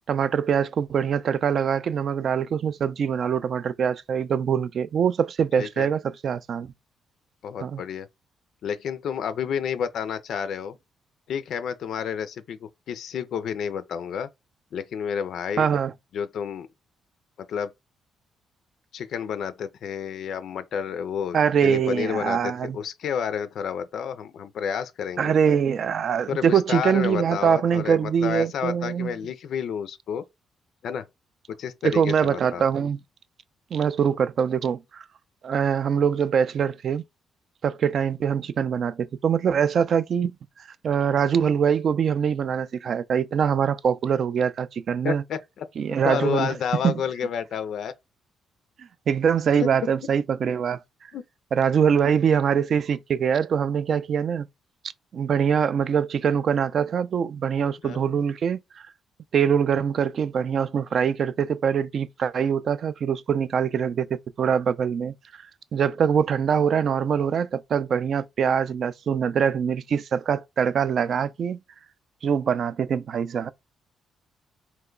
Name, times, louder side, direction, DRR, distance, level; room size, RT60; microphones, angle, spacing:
voice 1, 0.1-6.7 7.6-7.8 15.6-15.9 21.3-22.8 25.2-29.1 31.8-33.0 33.7-35.0 35.4-37.0 37.6-40.4 40.8-45.2 45.8-46.5 46.8-47.0 49.1-50.8 51.5-54.5 55.1-58.9 59.3-65.1 65.7-71.6 72.2-73.5, right 7 dB, 55° right, 0.3 m, -23 dB
voice 2, 5.6-5.9 7.4-8.1 8.6-10.7 11.3-14.3 14.7-15.7 16.1-16.7 17.4-17.7 18.9-21.4 21.6-25.3 26.3-30.2 30.8-31.1 31.5-32.6 45.0-45.7 46.0-47.9 49.6-49.7 51.1-51.2 57.8-58.2, left 7 dB, 70° left, 0.3 m, -30 dB
2.8 x 2.2 x 3.7 m
cardioid pair, 90°, 0 cm